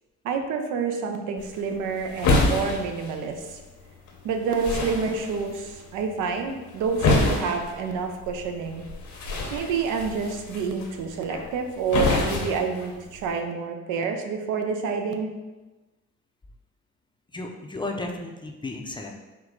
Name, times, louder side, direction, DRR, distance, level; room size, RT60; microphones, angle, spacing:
voice 1, 0.2-3.6 4.2-8.8 9.5-15.3, right 5 dB, 90° right, 5 dB, 0.6 m, -28 dB
sound 1, 1.4-13.4, left 2 dB, 70° left, 0.9 m, -29 dB
voice 2, 17.3-19.1, left 2 dB, 15° left, 1 dB, 0.4 m, -34 dB
4.6 x 2.2 x 3.7 m, 1.2 s
cardioid pair, 90°, 30 cm